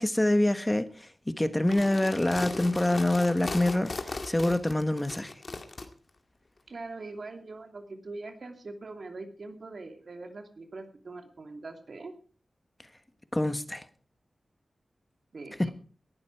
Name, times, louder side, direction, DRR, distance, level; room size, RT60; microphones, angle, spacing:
voice 1, 0.0-5.3 13.3-13.8 15.6-15.7, left 1 dB, 15° left, 1.4 m, -26 dB
sound 1, 1.6-5.9, left 3 dB, 45° left, 2.0 m, -38 dB
voice 2, 6.7-12.1 15.3-15.7, right 3 dB, 60° right, 2.8 m, -42 dB
18.5 x 11.5 x 4.7 m
wide cardioid pair, 80°, 0 cm